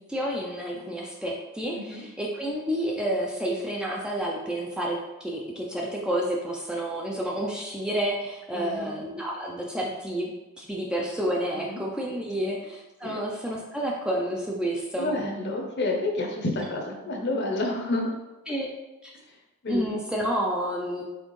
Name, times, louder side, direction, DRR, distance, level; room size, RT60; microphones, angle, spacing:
voice 1, 0.0-15.1 18.5-18.7 19.0-19.1 19.7-21.0, right 1 dB, 5° right, -2 dB, 0.3 m, -30 dB
voice 2, 1.7-2.1 8.5-8.9 11.7-11.8 12.4-12.5 13.0-13.2 15.0-18.1 19.6-20.0, left 2 dB, 50° left, 1 dB, 0.7 m, -29 dB
4.2 x 3.4 x 3.1 m, 1.1 s
head